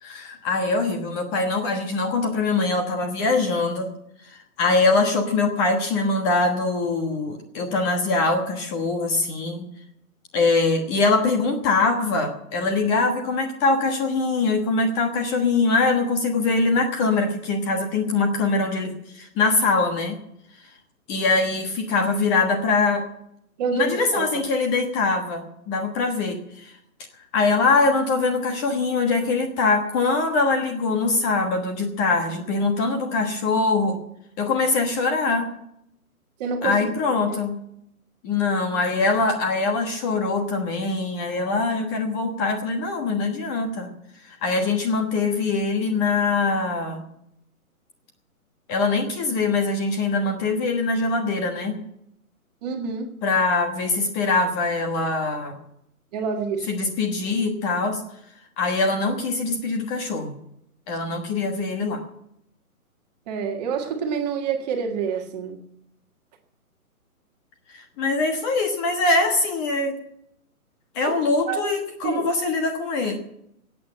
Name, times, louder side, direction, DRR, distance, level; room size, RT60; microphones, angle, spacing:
voice 1, 0.0-3.9 4.2-9.6 10.3-20.2 21.1-23.0 23.7-26.7 27.3-34.0 34.4-35.5 36.6-37.6 38.2-43.9 44.3-47.0 48.7-51.8 53.2-55.5 56.7-58.0 58.6-60.4 60.9-62.0 67.7-69.9 70.9-73.2, left 3 dB, 20° left, 4 dB, 1.3 m, -23 dB
voice 2, 23.6-24.4 36.4-36.9 52.6-53.1 56.1-56.7 63.3-65.6 71.0-71.1 71.5-71.7 72.0-72.3, right 6 dB, 30° right, 4 dB, 1.7 m, -27 dB
15.5 x 8.7 x 8.7 m, 0.77 s
hypercardioid pair, 150°, 44 cm